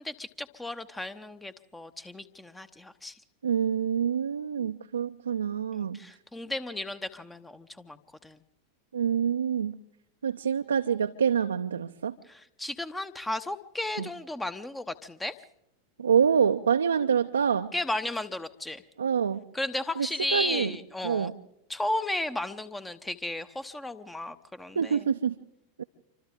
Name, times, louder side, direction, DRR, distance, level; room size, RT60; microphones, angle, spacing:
voice 1, 0.0-3.1 5.8-8.4 12.3-15.3 17.7-18.8 19.5-21.3 21.7-25.1, left 1 dB, 10° left, 12 dB, 1.0 m, -34 dB
voice 2, 3.4-6.0 8.9-9.8 10.2-12.1 14.0-14.1 16.0-17.7 19.0-19.4 20.0-20.1 20.3-20.7 21.0-21.3 24.8-25.4 25.8-25.9, right 7 dB, 70° right, 7 dB, 0.7 m, -26 dB
27.5 x 25.0 x 3.7 m, 0.79 s
figure-of-eight pair, 90°, 0 cm